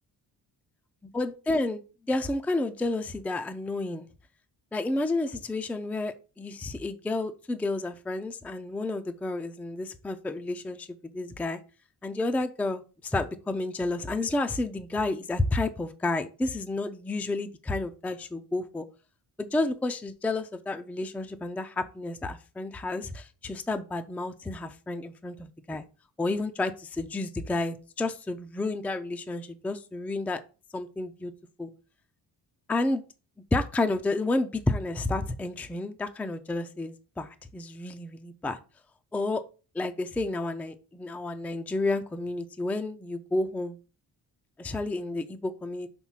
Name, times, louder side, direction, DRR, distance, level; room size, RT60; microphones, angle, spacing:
voice 1, 1.1-1.8 2.1-4.1 4.7-10.9 11.1-11.6 12.0-18.9 19.4-25.8 26.2-30.4 30.7-31.3 31.6-31.7 32.7-33.0 33.5-38.6 39.1-39.4 39.7-43.8 44.6-45.9, left 2 dB, 5° left, 8 dB, 0.4 m, -30 dB
6.1 x 3.6 x 5.6 m, 0.34 s
wide cardioid pair, 160°, 41 cm